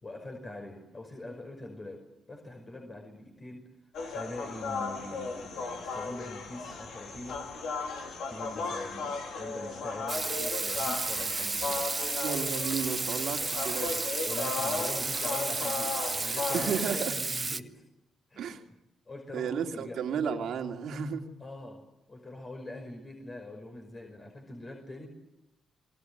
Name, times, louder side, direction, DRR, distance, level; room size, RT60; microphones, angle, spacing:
voice 1, 0.0-3.7 4.1-7.5 8.3-11.9 14.2-17.8 18.3-18.5 19.1-20.0 21.4-25.1, left 1 dB, 35° left, 2 dB, 5.4 m, -43 dB
sound 1, 3.9-16.8, left 4 dB, 80° left, 4.1 m, -36 dB
Water tap faucet / Sink (filling or washing), 10.1-17.6, right 3 dB, 30° right, 1.2 m, -32 dB
voice 2, 12.2-14.0 16.5-17.1 18.4-18.6 19.3-21.2, right 6 dB, 75° right, 4 dB, 2.6 m, -33 dB
28.0 x 22.0 x 8.0 m, 0.93 s
supercardioid pair, 65°, 0 cm